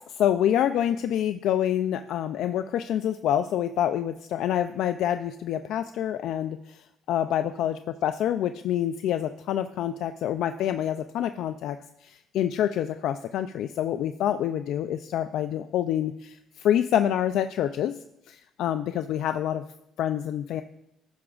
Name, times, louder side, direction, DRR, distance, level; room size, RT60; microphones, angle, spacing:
voice 1, 0.1-6.8 7.1-11.8 12.0-18.0 18.3-19.6 20.0-20.6, left 10 dB, 70° left, 8 dB, 0.3 m, -27 dB
16.0 x 6.1 x 2.4 m, 0.81 s
cardioid pair, 140°, 0 cm